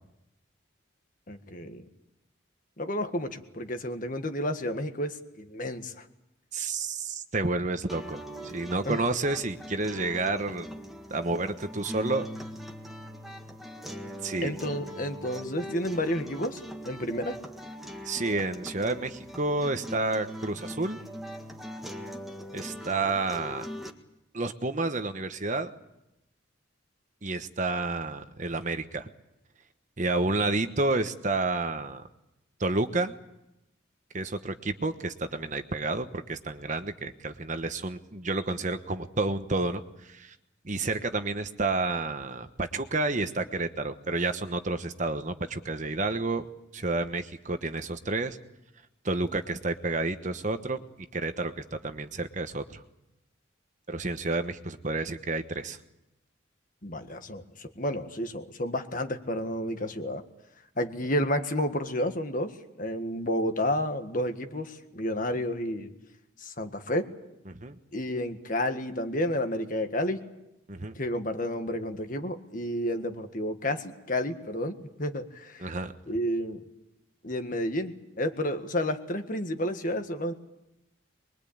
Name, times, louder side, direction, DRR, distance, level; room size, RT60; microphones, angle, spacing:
voice 1, 1.3-1.9 2.8-6.0 8.8-9.0 14.4-17.4 56.8-60.2 60.8-62.5 62.8-65.9 66.4-67.1 67.9-70.2 70.9-75.7 76.1-76.6 77.2-80.3, left 1 dB, 40° left, 7 dB, 1.7 m, -31 dB
voice 2, 6.5-10.7 11.1-12.3 14.2-14.5 18.0-21.0 22.5-23.7 24.3-25.7 27.2-29.1 30.0-32.1 32.6-33.1 34.1-40.3 40.6-46.5 46.7-48.4 49.0-50.8 51.1-52.8 53.9-55.8 67.5-67.8 70.7-71.0 75.6-75.9, right 2 dB, 40° right, 9 dB, 1.1 m, -30 dB
sound 1, 7.9-23.9, equal, ahead, 1.6 m, -41 dB
24.0 x 22.5 x 8.7 m, 0.90 s
head